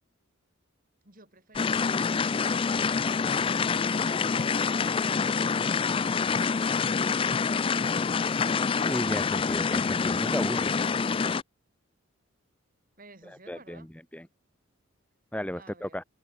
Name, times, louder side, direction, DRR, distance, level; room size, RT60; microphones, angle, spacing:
voice 1, 1.0-3.0 13.0-13.9 15.5-16.0, right 3 dB, 40° right, 7.3 m, -54 dB
sound 1, 1.6-11.4, left 5 dB, 25° left, 0.3 m, -26 dB
voice 2, 8.9-10.7 13.5-13.9 14.1-14.2 15.3-16.0, left 1 dB, 5° left, 0.8 m, -34 dB
open air
head